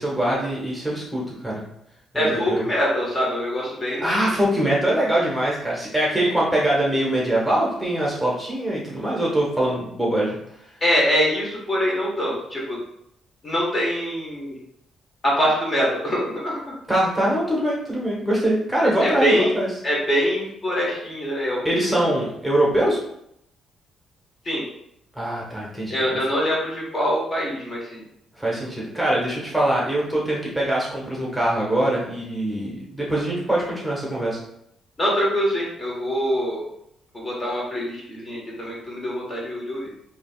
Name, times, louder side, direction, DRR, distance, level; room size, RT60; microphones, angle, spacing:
voice 1, 0.0-1.6 2.1-2.7 4.0-10.4 16.9-19.7 21.6-23.0 25.1-26.2 28.4-34.4, right 1 dB, ahead, -5 dB, 1.3 m, -23 dB
voice 2, 2.1-4.3 10.8-12.8 13.4-14.6 15.2-16.6 19.0-19.5 19.8-21.6 21.9-22.0 24.4-24.6 25.9-28.0 35.0-36.6 37.1-39.9, equal, 30° left, -4 dB, 1.3 m, -24 dB
4.9 x 2.9 x 2.4 m, 0.76 s
cardioid pair, 90°, 0 cm